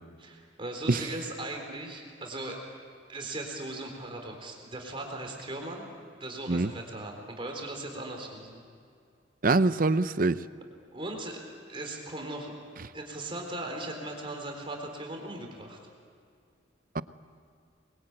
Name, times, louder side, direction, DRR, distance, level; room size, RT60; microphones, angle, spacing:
voice 1, 0.2-2.6 3.1-5.9 6.2-8.6 10.9-11.4 11.7-12.5 12.9-15.8, right 2 dB, 30° right, 4.0 m, -38 dB
voice 2, 9.4-10.4 16.9-17.0, right 3 dB, 45° right, 0.7 m, -24 dB
27.5 x 22.0 x 9.0 m
head